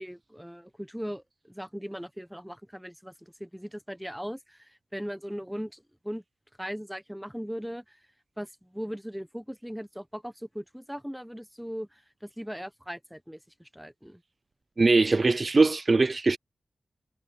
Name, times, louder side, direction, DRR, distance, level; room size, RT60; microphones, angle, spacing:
voice 1, 0.0-6.2 6.6-8.0 8.4-14.2, equal, ahead, 1.3 m, -39 dB
voice 2, 14.8-16.4, right 3 dB, 45° right, 0.5 m, -21 dB
wide cardioid pair, 80°, 0 cm